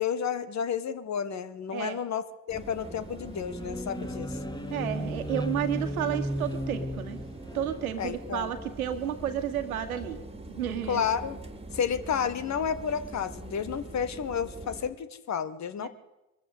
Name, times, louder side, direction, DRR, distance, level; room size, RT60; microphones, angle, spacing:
voice 1, 0.0-4.4 8.0-8.5 10.9-11.4 11.7-15.9, left 7 dB, 40° left, 14 dB, 1.6 m, -31 dB
sound 1, 2.5-14.9, right 2 dB, 15° right, 2.8 m, -43 dB
sound 2, 2.8-7.8, equal, 10° left, 1.8 m, -35 dB
voice 2, 4.7-7.2 7.5-10.2 10.5-11.1 15.8-15.9, right 10 dB, 80° right, 8 dB, 1.9 m, -32 dB
23.0 x 14.0 x 8.4 m, 0.98 s
figure-of-eight pair, 55°, 42 cm